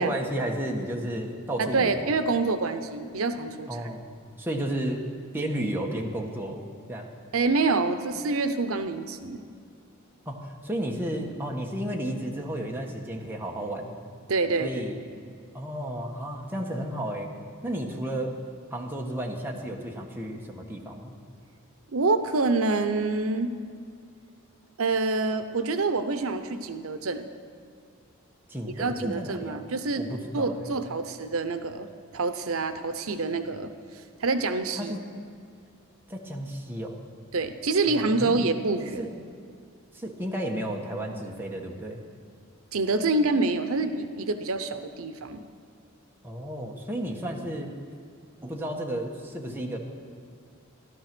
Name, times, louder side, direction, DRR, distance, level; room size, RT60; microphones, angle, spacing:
voice 1, 0.0-2.1 3.7-4.1 4.4-5.1 5.3-6.6 6.9-7.1 10.2-13.9 14.6-15.0 15.5-17.3 17.6-18.4 18.7-21.1 28.5-29.7 30.0-30.7 34.8-35.0 36.1-37.0 37.9-38.5 39.0-39.1 39.9-42.0 46.2-47.7 48.4-49.8, right 1 dB, 10° right, 0 dB, 1.3 m, -32 dB
voice 2, 1.6-3.8 7.3-9.4 14.3-14.9 21.9-23.5 24.8-27.3 28.8-30.0 30.3-31.9 32.1-33.7 34.2-34.9 37.3-39.1 42.7-45.4, right 3 dB, 85° right, 9 dB, 0.8 m, -26 dB
15.0 x 12.0 x 6.1 m, 2.3 s
head